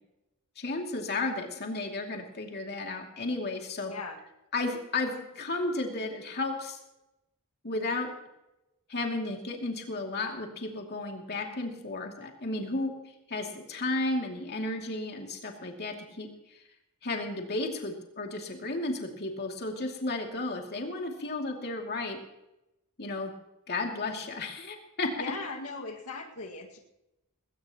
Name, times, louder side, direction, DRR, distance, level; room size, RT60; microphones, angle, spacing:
voice 1, 0.6-3.9 4.5-6.8 7.6-8.1 8.9-12.9 13.3-16.3 17.0-22.2 23.0-23.3 23.7-25.1, left 2 dB, 45° left, 2 dB, 2.6 m, -33 dB
voice 2, 3.9-4.2 25.2-26.8, left 3 dB, 90° left, 1 dB, 2.0 m, -39 dB
19.5 x 17.5 x 3.0 m, 0.93 s
head